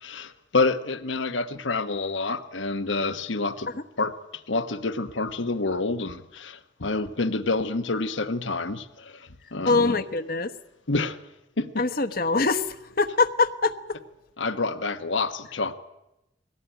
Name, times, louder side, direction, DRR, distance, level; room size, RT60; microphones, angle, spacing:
voice 1, 0.0-3.7 4.0-9.9 10.9-11.2 11.6-11.9 14.4-15.7, left 3 dB, 80° left, 1.2 m, -28 dB
voice 2, 9.7-10.5 11.8-13.7, left 3 dB, 50° left, 1.1 m, -23 dB
22.0 x 17.5 x 9.1 m
head